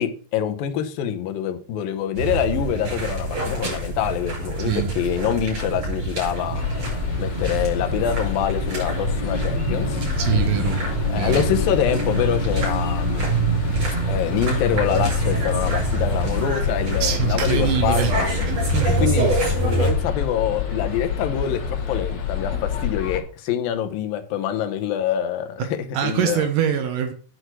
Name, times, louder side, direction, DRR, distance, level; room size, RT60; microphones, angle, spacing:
voice 1, 0.0-6.7 7.2-10.0 11.1-13.3 14.1-18.3 18.8-19.4 19.6-26.5, left 9 dB, 70° left, 2.4 m, -25 dB
sound 1, 2.1-19.9, right 2 dB, 35° right, 6.4 m, -25 dB
sound 2, 6.5-23.2, left 7 dB, 45° left, 2.9 m, -28 dB
voice 2, 10.2-10.8 11.1-11.4 17.0-18.1 18.7-19.3 25.6-25.7 25.9-27.1, right 9 dB, 75° right, 2.0 m, -23 dB
9.6 x 6.5 x 6.1 m
omnidirectional pair, 5.1 m